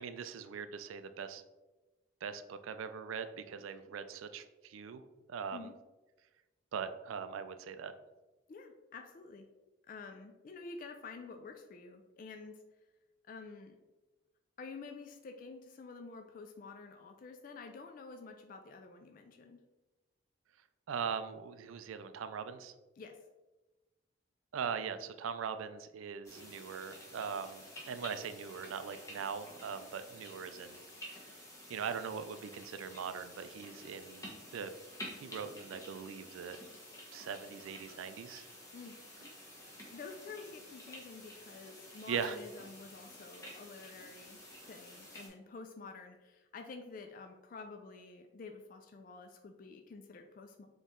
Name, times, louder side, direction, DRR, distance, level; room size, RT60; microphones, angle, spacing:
voice 1, 0.0-1.4 2.2-5.0 5.3-5.7 6.7-7.9 20.9-22.7 24.5-31.1 31.7-34.7 35.2-36.6 37.1-38.5 42.1-42.4, right 6 dB, 90° right, 10 dB, 0.4 m, -41 dB
voice 2, 8.5-9.5 9.9-12.6 13.2-13.8 14.6-19.6 23.0-23.2 38.7-39.0 39.9-44.4 44.7-50.7, left 4 dB, 45° left, 5 dB, 0.3 m, -49 dB
sound 1, 26.2-45.3, left 1 dB, 15° left, 1.0 m, -51 dB
4.2 x 3.0 x 3.6 m, 1.1 s
head